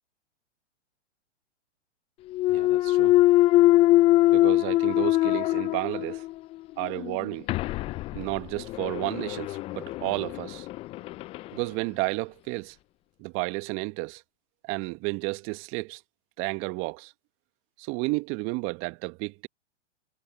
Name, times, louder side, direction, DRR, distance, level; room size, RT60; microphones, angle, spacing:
Thump thud, 2.3-6.3 6.8-11.5, left 16 dB, 15° left, 0.4 m, -23 dB
voice 1, 2.5-3.1 4.3-6.2 6.8-7.5 8.1-10.7 11.5-12.7 13.2-14.2 14.6-16.0 16.4-17.1 17.8-19.5, right 26 dB, 35° right, 1.6 m, -32 dB
hypercardioid pair, 115°, 35 cm